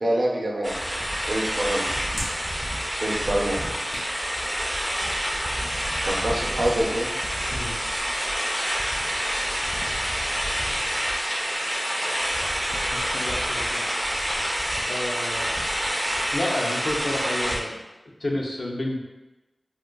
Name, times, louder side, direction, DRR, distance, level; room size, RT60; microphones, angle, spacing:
voice 1, 0.0-0.8 1.3-1.9 3.0-3.6 6.0-7.1, right 1 dB, 65° right, -2 dB, 0.6 m, -25 dB
sound 1, 0.6-17.6, equal, 10° right, 0.4 m, -27 dB
Hands, 0.7-9.1, equal, 85° left, 1.1 m, -44 dB
voice 2, 12.9-13.8 14.9-15.7 16.3-17.8 18.2-19.0, left 1 dB, 65° left, -1 dB, 0.5 m, -30 dB
3.6 x 2.5 x 2.2 m, 1.0 s
wide cardioid pair, 80°, 0 cm